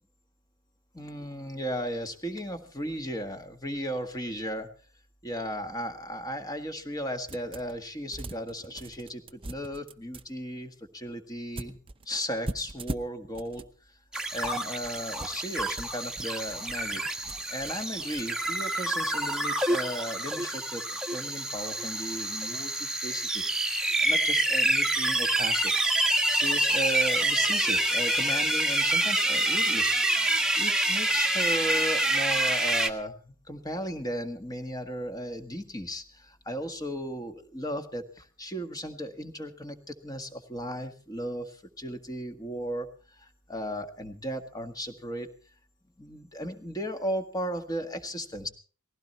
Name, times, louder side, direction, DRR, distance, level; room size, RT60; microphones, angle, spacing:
voice 1, 0.9-4.7 5.2-11.8 12.0-14.0 14.3-25.7 26.3-30.2 30.5-45.3 46.0-48.5, equal, 15° left, 6 dB, 1.7 m, -36 dB
sound 1, 7.3-7.8 8.1-10.2 11.6-13.7 14.3-18.5, right 2 dB, 25° right, 0.7 m, -41 dB
sound 2, 14.1-32.9, right 1 dB, 5° right, 1.4 m, -27 dB
19.5 x 16.0 x 4.3 m, 0.39 s
head